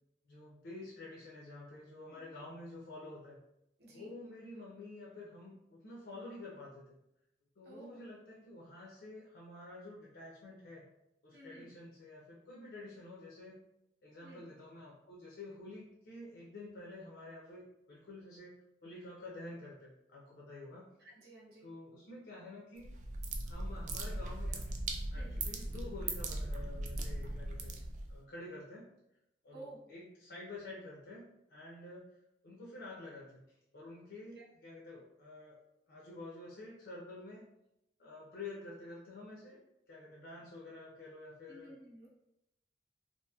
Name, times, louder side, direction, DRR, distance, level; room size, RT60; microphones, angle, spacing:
voice 1, 0.3-3.4 3.9-7.0 7.6-10.8 11.2-13.6 14.0-18.5 18.8-20.9 21.6-22.9 23.4-24.6 25.1-27.8 28.1-28.9 29.4-32.0 32.4-33.4 33.7-35.6 35.9-37.5 38.0-39.6 39.9-41.7, left 2 dB, 75° left, -5 dB, 0.6 m, -49 dB
voice 2, 2.1-2.4 3.8-4.1 7.6-8.0 11.3-11.7 14.2-14.5 21.0-21.7 25.1-25.4 29.5-29.8 34.4-34.5 41.5-42.1, right 1 dB, 60° right, -5 dB, 0.7 m, -53 dB
sound 1, 22.8-28.2, right 2 dB, 45° right, 0.3 m, -39 dB
2.9 x 2.6 x 2.3 m, 0.85 s
head